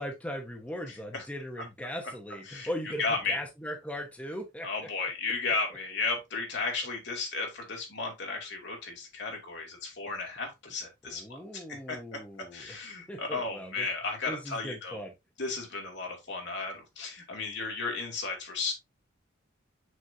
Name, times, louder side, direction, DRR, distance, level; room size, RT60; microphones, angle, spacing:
voice 1, 0.0-4.7 11.0-12.8 13.1-13.9 14.3-15.1, equal, 5° left, 1.0 m, -39 dB
voice 2, 0.9-1.2 2.5-2.7 3.0-3.4 4.6-15.0 15.4-18.7, left 4 dB, 60° left, 2.5 m, -34 dB
6.3 x 6.3 x 2.7 m
head